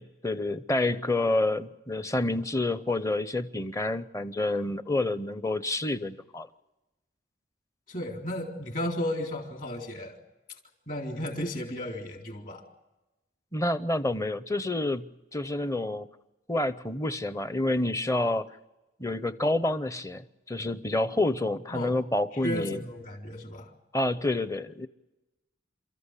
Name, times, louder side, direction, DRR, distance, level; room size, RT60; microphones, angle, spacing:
voice 1, 0.0-6.5 13.5-16.1 16.5-18.5 19.0-22.8 23.9-24.9, left 2 dB, 15° left, 13 dB, 0.7 m, -28 dB
voice 2, 7.9-10.2 10.5-10.6 10.9-12.6 21.7-21.9 22.3-23.7, left 1 dB, 45° left, 2 dB, 3.9 m, -34 dB
29.5 x 14.5 x 8.3 m, 1.1 s
head